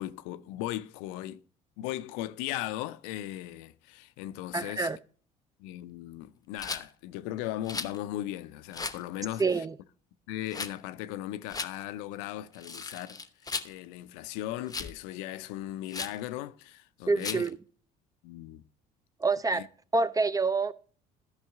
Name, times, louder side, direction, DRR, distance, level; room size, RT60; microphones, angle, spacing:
voice 1, 0.0-1.4 1.8-4.9 5.6-9.6 10.3-17.5 18.2-18.6 19.5-19.7, left 14 dB, 75° left, 0.5 m, -37 dB
voice 2, 4.5-5.0 9.4-9.7 17.1-17.6 19.2-19.6 19.9-20.7, right 3 dB, 15° right, 0.5 m, -27 dB
Rattle, 6.6-6.8 7.6-8.0 8.7-9.0 10.5-10.7 11.5-11.7 12.5-13.7 14.7-15.0 15.9-16.2 17.2-17.5, left 4 dB, 20° left, 0.8 m, -36 dB
13.0 x 5.5 x 3.5 m
hypercardioid pair, 55°, 20 cm